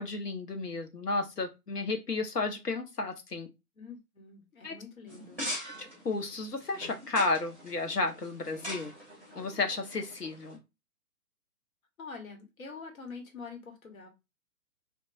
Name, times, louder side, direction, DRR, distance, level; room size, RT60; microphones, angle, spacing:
voice 1, 0.0-3.5 4.6-4.8 5.8-8.9 9.3-10.6, left 3 dB, 90° left, 6 dB, 0.8 m, -32 dB
voice 2, 3.7-5.5 12.0-14.1, left 4 dB, 65° left, 3 dB, 1.2 m, -45 dB
sound 1, 5.1-10.6, equal, 5° left, 1.0 m, -42 dB
2.9 x 2.2 x 2.7 m, 0.24 s
figure-of-eight pair, 125°, 46 cm